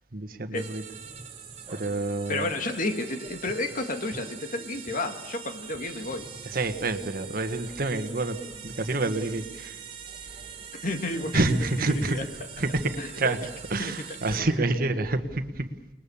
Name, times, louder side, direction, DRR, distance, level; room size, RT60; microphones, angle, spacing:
voice 1, 0.1-0.8 1.7-2.5 6.4-9.8 10.3-10.4 11.3-12.3 12.6-15.9, right 2 dB, 55° right, 1.6 m, -28 dB
sound 1, 0.5-14.4, right 6 dB, 35° right, 3.1 m, -43 dB
voice 2, 2.3-6.2 10.8-11.4 11.9-12.2 13.0-13.3 13.8-13.9, left 2 dB, 50° left, 2.1 m, -31 dB
28.5 x 21.0 x 7.2 m
head